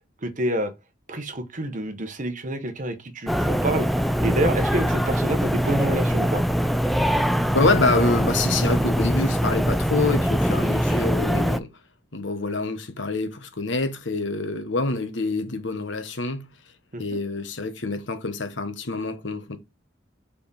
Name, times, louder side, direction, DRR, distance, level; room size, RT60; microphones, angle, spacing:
voice 1, 0.2-0.7 1.1-3.9 4.2-6.4 16.9-17.0, right 1 dB, 45° right, 1.0 m, -27 dB
sound 1, 3.3-11.6, equal, ahead, 0.4 m, -23 dB
voice 2, 7.5-11.7 12.1-16.5 17.0-19.6, left 3 dB, 75° left, 1.2 m, -26 dB
4.9 x 4.9 x 5.4 m
head